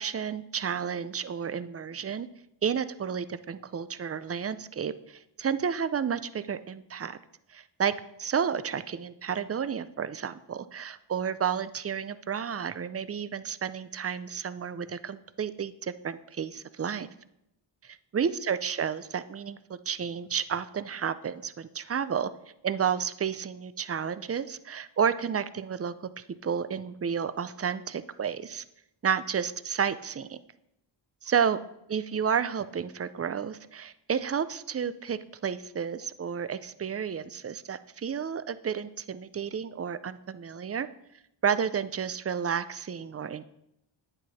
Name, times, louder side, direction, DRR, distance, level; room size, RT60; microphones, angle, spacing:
voice 1, 0.0-2.3 2.6-7.2 7.5-7.9 8.2-17.1 17.8-22.3 22.6-25.9 26.4-28.6 29.0-30.4 31.2-31.6 31.9-40.9 41.4-43.4, right 7 dB, 30° right, 14 dB, 0.5 m, -31 dB
10.0 x 9.1 x 4.2 m, 0.81 s
wide cardioid pair, 105°, 47 cm